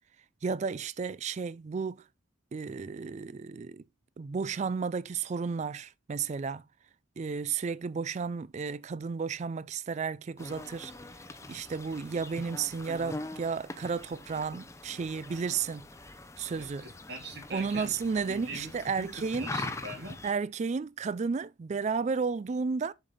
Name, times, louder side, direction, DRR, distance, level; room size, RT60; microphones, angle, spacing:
voice 1, 0.4-2.0 2.5-3.8 4.2-6.6 7.2-10.9 11.5-15.9 16.4-16.9 17.5-19.5 20.2-22.9, right 5 dB, 35° right, 0.3 m, -33 dB
sound 1, 10.4-20.3, left 2 dB, 15° left, 0.6 m, -43 dB
voice 2, 16.6-18.0 18.3-19.1 19.4-20.2, right 2 dB, 55° right, 2.6 m, -42 dB
7.2 x 5.0 x 3.9 m
head